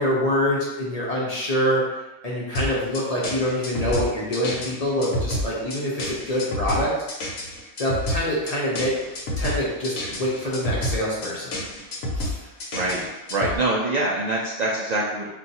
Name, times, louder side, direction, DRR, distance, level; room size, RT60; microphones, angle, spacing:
voice 1, 0.0-1.8 2.2-6.9 7.8-8.9 9.4-11.6 12.1-12.4, equal, 40° left, -6 dB, 0.6 m, -25 dB
sound 1, 2.5-13.6, left 1 dB, 75° left, 1.0 m, -29 dB
voice 2, 12.4-15.3, right 2 dB, 75° right, -4 dB, 0.4 m, -25 dB
2.5 x 2.3 x 4.0 m, 1.0 s
omnidirectional pair, 1.2 m